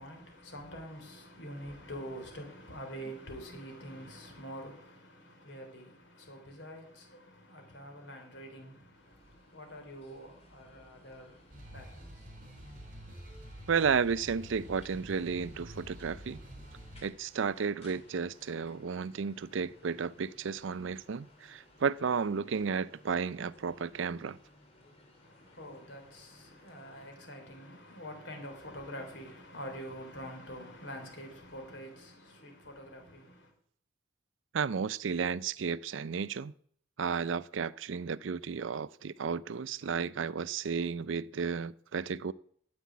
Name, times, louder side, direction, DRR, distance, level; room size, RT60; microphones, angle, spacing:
voice 1, 0.0-12.9 25.2-33.5, equal, 65° left, 3.8 m, -46 dB
St Pancras station road entrance atmos, 8.9-27.1, left 1 dB, 30° left, 3.0 m, -60 dB
sound 1, 11.5-17.1, equal, 45° right, 4.4 m, -48 dB
voice 2, 13.7-16.4 17.0-24.4 34.5-36.5 37.0-42.3, right 6 dB, 70° right, 0.4 m, -33 dB
9.8 x 8.4 x 9.4 m
head